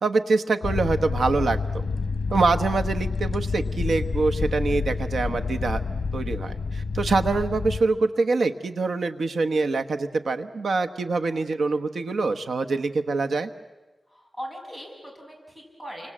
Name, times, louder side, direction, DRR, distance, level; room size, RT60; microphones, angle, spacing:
voice 1, 0.0-1.6 2.3-5.8 6.1-13.5, right 3 dB, 90° right, 7 dB, 1.2 m, -25 dB
sound 1, 0.6-7.8, left 4 dB, 65° left, 1.2 m, -28 dB
voice 2, 14.1-16.1, equal, 15° right, 0 dB, 6.6 m, -39 dB
29.0 x 26.0 x 7.6 m, 1.1 s
wide cardioid pair, 130°, 0 cm